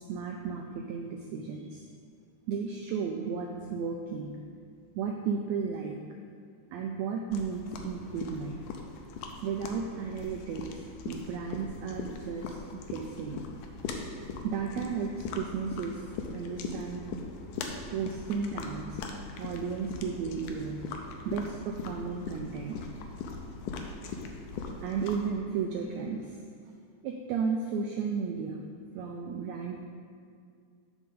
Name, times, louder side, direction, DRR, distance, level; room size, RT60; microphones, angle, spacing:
voice 1, 0.1-1.8 2.5-4.4 4.9-6.0 6.7-8.6 9.4-13.4 14.4-16.0 16.3-17.1 17.9-19.0 19.4-20.8 21.2-22.8 24.8-26.4 27.0-28.6 28.9-29.8, right 6 dB, 90° right, 2 dB, 1.6 m, -34 dB
sound 1, 7.3-25.3, left 4 dB, 85° left, 2.2 m, -40 dB
8.0 x 6.3 x 3.8 m, 2.2 s
omnidirectional pair, 3.7 m